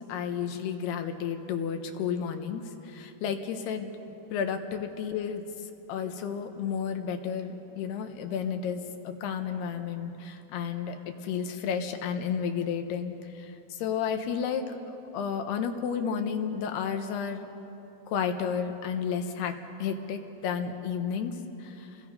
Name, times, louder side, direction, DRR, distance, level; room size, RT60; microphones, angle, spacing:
voice 1, 0.1-3.9 4.3-4.6 5.0-5.4 5.9-17.5 18.1-19.5 19.8-21.3 21.6-21.9, left 7 dB, 90° left, 6 dB, 3.3 m, -32 dB
30.0 x 21.5 x 5.4 m, 2.9 s
omnidirectional pair, 4.5 m